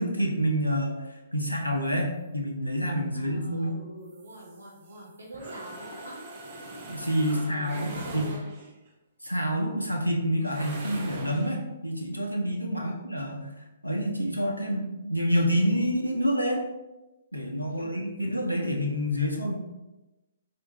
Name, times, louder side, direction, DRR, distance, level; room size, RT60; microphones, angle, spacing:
voice 1, 0.0-3.8 6.9-8.3 9.2-13.5 13.8-16.6 17.3-19.5, equal, 85° left, 0 dB, 0.6 m, -28 dB
voice 2, 3.1-6.2 7.2-8.5 12.7-13.1 17.7-18.0, right 1 dB, 65° right, -2 dB, 0.9 m, -45 dB
sound 1, 4.1-8.9 10.4-11.6, right 2 dB, 35° right, 0.6 m, -42 dB
3.5 x 2.5 x 3.0 m, 1.0 s
figure-of-eight pair, 125°, 0 cm